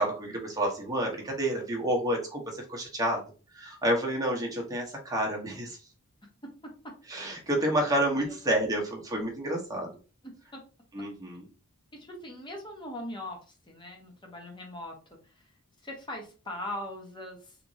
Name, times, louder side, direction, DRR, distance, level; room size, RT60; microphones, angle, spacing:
voice 1, 0.0-3.2 3.5-5.8 7.1-9.9 10.9-11.5, right 1 dB, 15° right, -1 dB, 0.9 m, -29 dB
voice 2, 9.1-9.5 10.2-10.6 11.9-13.4 13.7-15.2 15.8-17.6, left 1 dB, 20° left, 0 dB, 1.0 m, -40 dB
3.3 x 3.0 x 2.7 m, 0.35 s
head